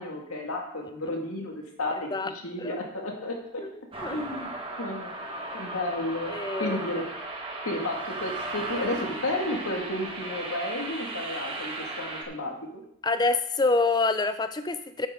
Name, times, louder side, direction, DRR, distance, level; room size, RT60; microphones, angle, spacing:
voice 1, 0.0-3.6 4.1-4.5 4.8-5.1 5.5-6.3 6.6-7.1 7.6-12.8, left 1 dB, 90° left, 1 dB, 2.2 m, -32 dB
sound 1, 3.9-12.2, right 2 dB, 25° right, 1.5 m, -36 dB
voice 2, 6.3-6.8 13.0-15.1, left 3 dB, 20° left, 10 dB, 0.5 m, -26 dB
11.5 x 9.2 x 3.8 m, 0.76 s
head